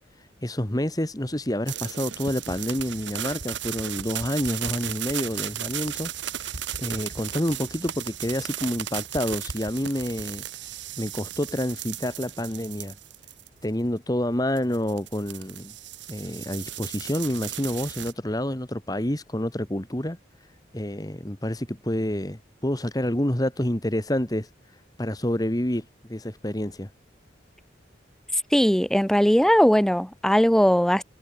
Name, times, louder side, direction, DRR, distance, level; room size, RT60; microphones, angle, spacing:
voice 1, 0.4-6.5 6.8-10.4 11.0-13.0 13.6-15.7 16.1-20.2 20.7-24.5 25.0-26.9, left 1 dB, 20° left, 1.7 m, -28 dB
sound 1, 1.7-13.6 14.6-18.1, right 10 dB, 85° right, 2.0 m, -35 dB
voice 2, 28.3-31.0, equal, 5° left, 0.5 m, -19 dB
head